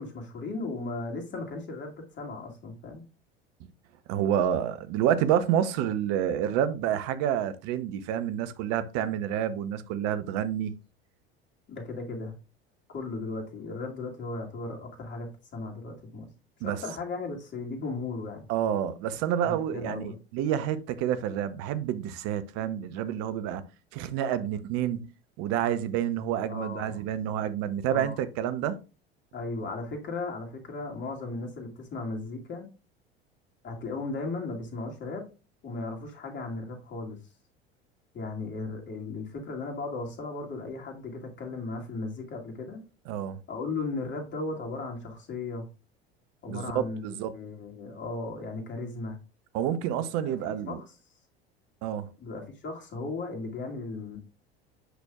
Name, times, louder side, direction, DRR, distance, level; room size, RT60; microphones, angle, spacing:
voice 1, 0.0-3.0 11.7-12.3 12.9-15.3 15.5-16.3 16.6-18.5 19.4-20.2 26.5-27.0 27.9-28.2 29.3-32.7 33.6-35.3 35.6-37.2 38.1-42.8 43.5-45.7 46.4-47.0 47.3-49.2 50.0-50.9 52.2-54.2, left 3 dB, 40° left, 2.4 m, -36 dB
voice 2, 4.1-10.7 16.6-16.8 18.5-23.6 23.9-25.1 25.4-28.8 43.1-43.4 46.5-47.3 49.5-50.8 51.8-52.1, right 10 dB, 55° right, 0.8 m, -28 dB
8.1 x 6.2 x 2.4 m
hypercardioid pair, 75°, 30 cm